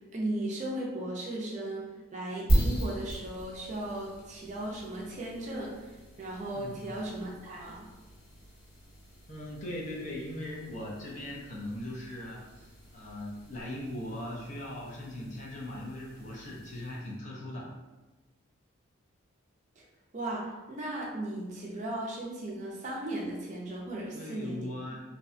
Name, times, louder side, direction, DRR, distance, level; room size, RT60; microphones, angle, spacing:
voice 1, 0.1-5.9 6.2-7.9 20.1-25.0, right 1 dB, 35° right, -3 dB, 0.4 m, -36 dB
sound 1, 2.5-17.2, right 1 dB, 85° left, 1.5 m, -37 dB
voice 2, 6.5-6.9 9.3-17.7 24.1-25.0, left 1 dB, 35° left, -4 dB, 0.5 m, -39 dB
2.6 x 2.1 x 2.5 m, 1.2 s
head